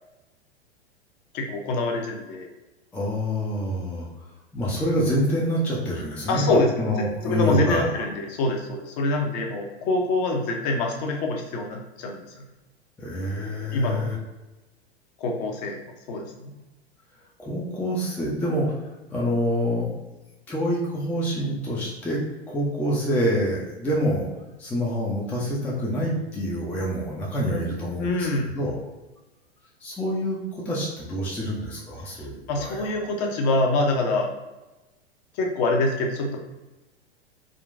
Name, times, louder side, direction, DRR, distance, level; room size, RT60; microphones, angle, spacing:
voice 1, 1.3-2.5 6.3-6.9 7.2-12.4 13.7-14.0 15.2-15.8 16.1-16.5 28.0-28.5 32.1-34.3 35.4-36.4, left 2 dB, 40° left, 1 dB, 0.7 m, -25 dB
voice 2, 2.9-4.1 4.5-8.0 13.0-14.2 17.4-18.8 19.1-19.9 20.5-22.2 22.5-24.3 24.6-28.8 29.8-32.9, equal, 5° left, -5 dB, 0.4 m, -26 dB
3.7 x 2.2 x 2.5 m, 1.1 s
figure-of-eight pair, 95°, 33 cm